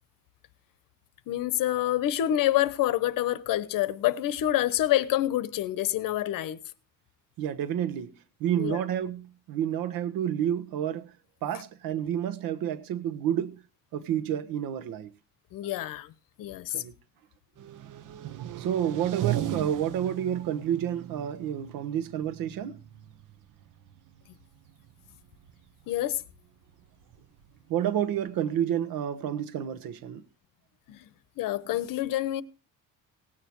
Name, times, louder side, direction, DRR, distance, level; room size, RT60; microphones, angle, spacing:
voice 1, 1.3-6.6 8.6-8.8 15.5-16.1 16.4-16.8 25.9-26.2 30.9-32.4, left 13 dB, 70° left, 1.1 m, -27 dB
voice 2, 7.4-8.1 8.4-11.1 11.4-13.6 13.9-15.1 16.7-16.9 18.6-22.8 27.7-30.2, right 10 dB, 80° right, 1.3 m, -30 dB
sound 1, 17.6-28.6, right 12 dB, 65° right, 1.1 m, -38 dB
17.5 x 8.8 x 4.6 m
cardioid pair, 145°, 34 cm